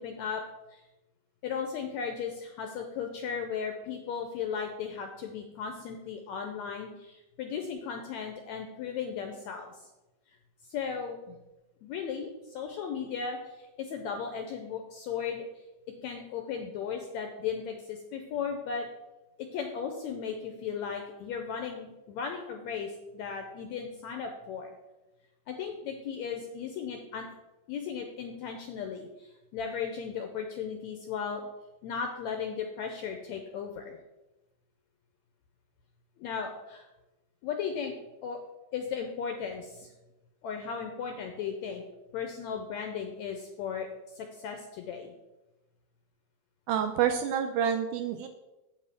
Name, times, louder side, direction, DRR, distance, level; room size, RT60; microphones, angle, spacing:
voice 1, 0.0-0.4 0.7-0.8 1.4-9.7 10.7-11.4 11.8-15.5 16.0-18.9 19.4-24.7 25.5-27.3 27.7-31.5 31.8-34.0 36.2-36.9 37.4-38.0 38.2-38.4 38.7-39.9 40.4-41.8 42.1-43.9 44.1-45.1, left 6 dB, 80° left, 4 dB, 1.7 m, -36 dB
voice 2, 46.7-48.3, right 8 dB, 80° right, 7 dB, 1.8 m, -28 dB
8.4 x 8.1 x 3.6 m, 1.0 s
omnidirectional pair, 3.9 m